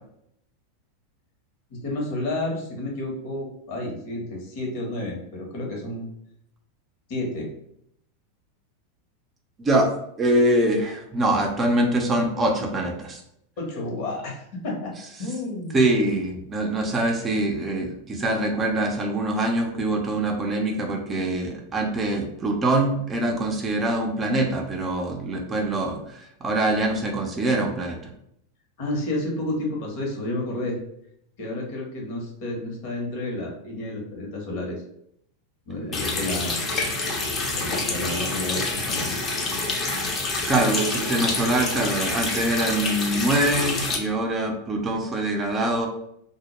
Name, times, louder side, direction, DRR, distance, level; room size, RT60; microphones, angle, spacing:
voice 1, 1.7-6.1 7.1-7.5 13.6-14.9 15.2-15.9 28.8-30.8 31.4-34.8 35.7-36.6 37.5-39.2, left 1 dB, 60° left, -1 dB, 1.0 m, -31 dB
voice 2, 9.6-9.9 10.2-13.2 15.7-28.0 40.5-45.9, right 1 dB, 25° right, 1 dB, 0.5 m, -24 dB
Water tap faucet, 35.9-44.0, left 3 dB, 30° left, 0.6 m, -27 dB
2.1 x 2.0 x 3.0 m, 0.73 s
hypercardioid pair, 100°, 0 cm